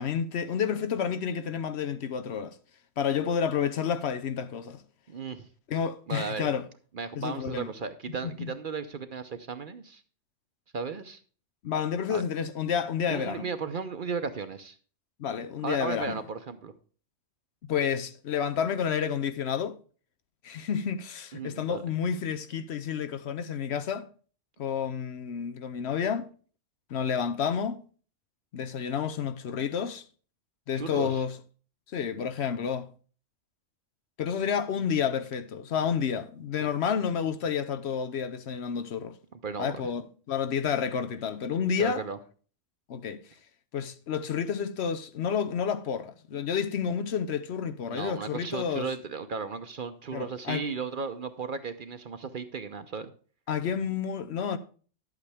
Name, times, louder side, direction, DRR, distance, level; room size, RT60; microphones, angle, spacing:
voice 1, 0.0-2.5 3.0-4.8 5.7-6.7 7.1-7.7 8.4-8.5 11.6-13.4 15.2-16.2 17.7-19.8 20.4-24.1 24.6-26.3 26.9-27.8 28.5-30.0 30.7-31.4 31.9-32.9 34.2-39.2 39.6-42.0 42.9-43.2 43.7-48.9 50.1-50.7 53.5-54.6, left 7 dB, 65° left, 0.9 m, -30 dB
voice 2, 5.1-5.5 6.1-6.5 6.9-10.0 10.7-11.2 12.1-12.2 13.1-14.8 15.6-16.7 21.3-21.8 30.8-31.2 36.6-36.7 39.4-39.9 41.8-42.2 46.3-46.4 47.9-53.1, right 5 dB, 50° right, 0.8 m, -35 dB
10.5 x 8.3 x 3.4 m
omnidirectional pair, 1.3 m